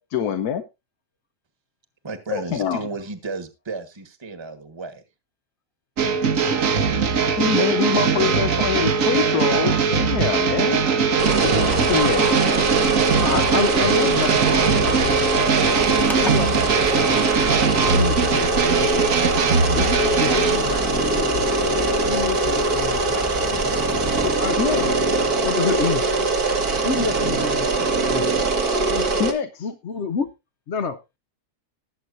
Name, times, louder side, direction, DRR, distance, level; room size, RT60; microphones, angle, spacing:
voice 1, 0.1-0.6 2.3-2.8 7.4-10.8 11.4-12.5 24.6-24.8 29.2-29.7, left 8 dB, 80° left, 1.3 m, -25 dB
voice 2, 2.0-5.0, right 3 dB, 20° right, 1.3 m, -33 dB
sound 1, 6.0-20.6, right 5 dB, 60° right, 1.4 m, -20 dB
sound 2, 11.2-29.3, right 2 dB, 75° right, 2.2 m, -22 dB
voice 3, 13.1-15.5 15.9-17.3 17.8-18.9 19.7-21.6 22.1-23.0 23.5-23.6 24.2-25.0 25.3-26.1 26.8-28.2 28.9-29.1 29.6-30.3 30.7-31.0, left 5 dB, 55° left, 0.9 m, -29 dB
sound 3, 15.6-24.4, equal, ahead, 0.8 m, -36 dB
20.0 x 7.9 x 2.6 m
omnidirectional pair, 1.6 m